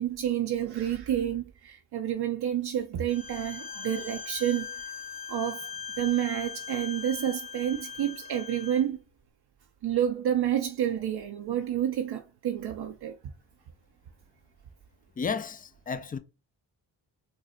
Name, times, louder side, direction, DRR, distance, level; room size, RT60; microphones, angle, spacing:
voice 1, 0.0-4.7 5.3-5.7 6.0-9.0 9.8-13.1, right 10 dB, 60° right, 0.5 m, -29 dB
Bowed string instrument, 3.1-8.8, left 6 dB, 55° left, 0.9 m, -40 dB
voice 2, 15.2-16.2, left 5 dB, 20° left, 0.3 m, -32 dB
4.1 x 2.0 x 2.4 m
supercardioid pair, 45°, 44 cm